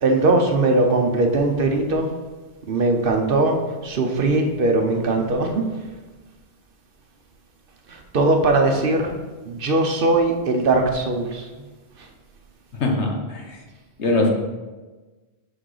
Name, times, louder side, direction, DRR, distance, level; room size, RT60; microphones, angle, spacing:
voice 1, 0.0-2.1 2.7-5.6 7.9-9.1 9.4-11.5 12.0-12.1, right 2 dB, 55° right, 4 dB, 1.0 m, -20 dB
voice 2, 12.8-13.4 14.0-14.3, left 2 dB, 90° left, 1 dB, 1.5 m, -21 dB
6.3 x 5.3 x 4.9 m, 1.3 s
omnidirectional pair, 1.1 m